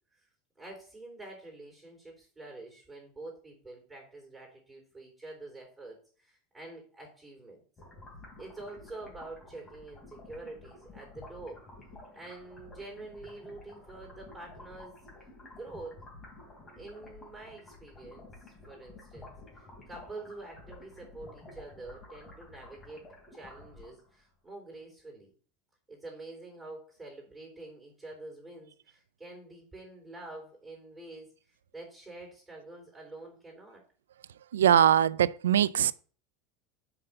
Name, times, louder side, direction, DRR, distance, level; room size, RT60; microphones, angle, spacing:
voice 1, 0.6-7.6 8.4-11.6 12.1-15.0 15.5-16.0 16.8-25.3 25.9-33.8, right 2 dB, 10° right, 3.8 m, -47 dB
sound 1, 7.8-24.2, left 2 dB, 30° left, 3.6 m, -51 dB
voice 2, 34.5-35.9, right 10 dB, 90° right, 0.3 m, -22 dB
5.8 x 5.5 x 6.5 m
hypercardioid pair, 95°, 0 cm